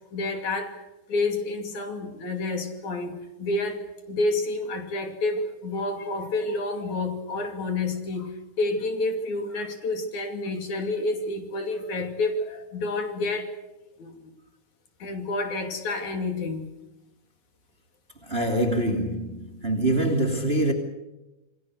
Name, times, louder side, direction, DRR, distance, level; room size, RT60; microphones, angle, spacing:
voice 1, 0.1-13.5 14.0-14.3 15.0-16.7, left 2 dB, 60° left, 4.1 m, -29 dB
voice 2, 18.3-20.7, right 1 dB, 20° right, 2.7 m, -24 dB
28.0 x 21.0 x 6.6 m
omnidirectional pair, 3.8 m